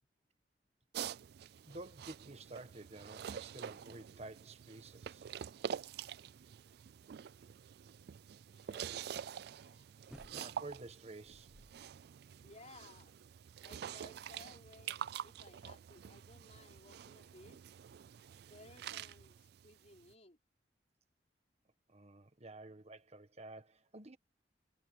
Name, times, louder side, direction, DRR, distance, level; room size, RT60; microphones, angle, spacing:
sound 1, 0.9-20.1, right 8 dB, 65° right, 0.3 m, -47 dB
voice 1, 1.6-5.3 10.3-11.5 21.9-24.2, right 2 dB, 40° right, 1.5 m, -51 dB
voice 2, 8.5-10.2 12.4-13.2 13.6-17.6 18.3-20.4, left 2 dB, 40° left, 4.6 m, -60 dB
sound 2, 10.1-10.8 11.2-12.0 12.4-12.5, equal, 5° right, 1.0 m, -58 dB
head